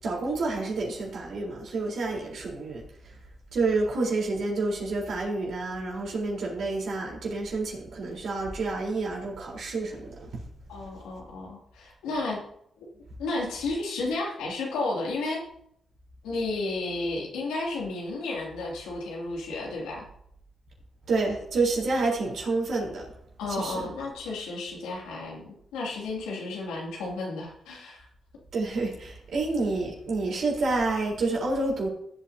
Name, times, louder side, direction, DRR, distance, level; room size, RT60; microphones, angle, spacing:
voice 1, 0.0-2.8 3.5-10.4 21.1-23.0 23.5-23.9 28.5-31.9, right 3 dB, 70° right, -2 dB, 4.2 m, -29 dB
voice 2, 10.7-12.4 12.8-12.9 13.2-15.4 16.2-20.0 23.4-28.1, left 2 dB, 85° left, -3 dB, 2.8 m, -32 dB
16.0 x 8.4 x 2.9 m, 0.72 s
supercardioid pair, 45°, 0 cm